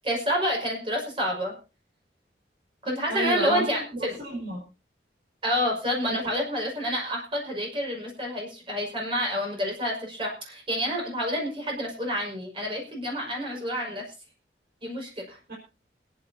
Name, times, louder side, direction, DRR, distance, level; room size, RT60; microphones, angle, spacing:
voice 1, 0.0-1.5 2.8-4.2 5.4-14.0 14.8-15.4, equal, 30° right, -1 dB, 5.7 m, -28 dB
voice 2, 3.1-4.6 6.1-6.2 15.5-15.6, right 1 dB, 60° right, -4 dB, 5.6 m, -31 dB
28.5 x 10.0 x 2.8 m, 0.32 s
head